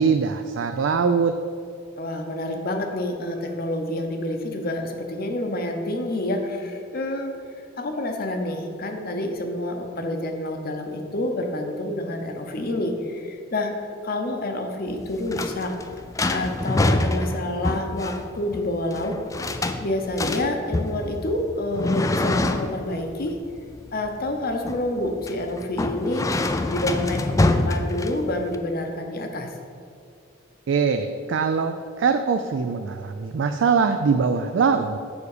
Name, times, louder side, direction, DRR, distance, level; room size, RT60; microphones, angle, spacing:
voice 1, 0.0-1.3 30.7-35.0, right 5 dB, 65° right, 7 dB, 0.3 m, -22 dB
voice 2, 2.0-7.4 7.8-15.7 16.3-19.2 19.8-23.4 23.9-29.5, left 1 dB, 50° left, 4 dB, 0.8 m, -28 dB
sound 1, 14.9-28.5, left 2 dB, 15° left, 0.3 m, -26 dB
7.1 x 4.9 x 6.6 m, 2.4 s
head